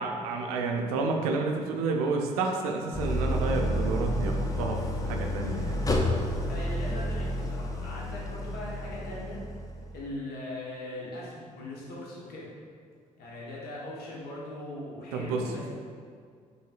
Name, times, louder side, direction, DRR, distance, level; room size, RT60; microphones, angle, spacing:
voice 1, 0.0-5.9 15.1-15.7, right 3 dB, 75° right, 2 dB, 0.4 m, -30 dB
Idling, 2.9-10.0, left 1 dB, 20° left, 0.5 m, -30 dB
voice 2, 6.5-9.4 9.9-12.5 13.2-15.7, left 1 dB, 60° left, -5 dB, 1.2 m, -40 dB
5.4 x 3.1 x 2.4 m, 2.1 s
figure-of-eight pair, 45°, 19 cm